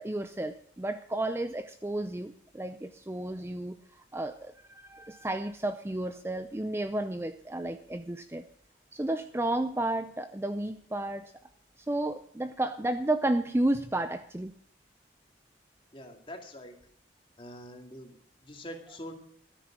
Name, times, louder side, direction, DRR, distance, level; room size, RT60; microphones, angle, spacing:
voice 1, 0.0-8.4 8.9-11.3 11.8-14.5, right 1 dB, 15° right, 10 dB, 0.5 m, -32 dB
voice 2, 15.9-16.8 17.4-19.1, equal, 25° left, 3 dB, 2.2 m, -44 dB
13.0 x 10.0 x 6.0 m, 0.64 s
head